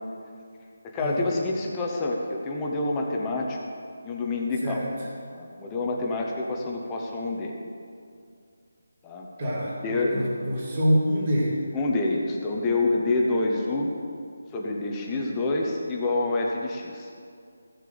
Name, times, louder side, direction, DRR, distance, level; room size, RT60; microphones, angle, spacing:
voice 1, 0.8-3.6 4.0-4.8 5.3-7.5 9.0-9.3 9.8-10.4 11.7-13.9 14.5-17.1, left 2 dB, 10° left, -1 dB, 0.9 m, -27 dB
voice 2, 9.4-11.6, equal, 25° right, -5 dB, 2.7 m, -26 dB
15.5 x 6.8 x 7.0 m, 2.3 s
figure-of-eight pair, 175°, 0 cm